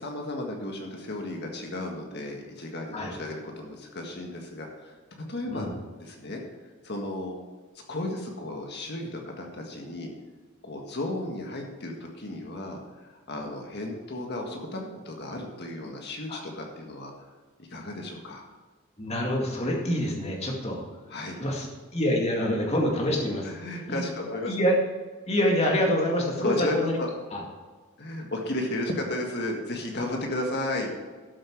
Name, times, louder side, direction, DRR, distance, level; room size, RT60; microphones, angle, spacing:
voice 1, 0.0-5.0 5.3-5.7 6.0-6.4 6.8-7.4 7.9-10.1 10.6-17.3 17.6-18.4 21.1-21.4 23.4-24.6 26.4-27.1 28.0-30.9, left 1 dB, 50° left, 2 dB, 1.7 m, -34 dB
voice 2, 19.0-20.8 21.4-23.5 23.9-24.0 24.5-24.8 25.3-27.0 27.3-27.4, equal, 30° left, 0 dB, 2.2 m, -26 dB
12.5 x 7.7 x 4.6 m, 1.4 s
head